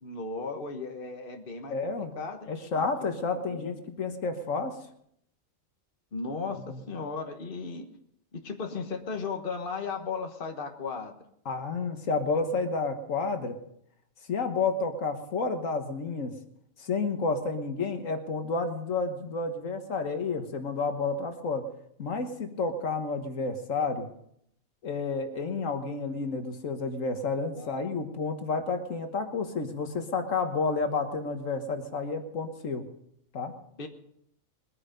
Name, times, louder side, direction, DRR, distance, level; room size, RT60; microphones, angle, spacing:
voice 1, 0.0-2.8 3.5-3.8 6.1-7.9 8.3-11.1 27.6-27.8 33.8-33.9, left 4 dB, 45° left, 5 dB, 1.5 m, -36 dB
voice 2, 1.7-2.1 2.5-4.8 6.7-6.8 11.5-13.6 14.3-16.3 16.8-21.6 22.0-24.1 24.8-32.8 33.3-33.5, left 4 dB, 75° left, 6 dB, 1.7 m, -30 dB
21.0 x 9.6 x 5.2 m, 0.72 s
omnidirectional pair, 1.4 m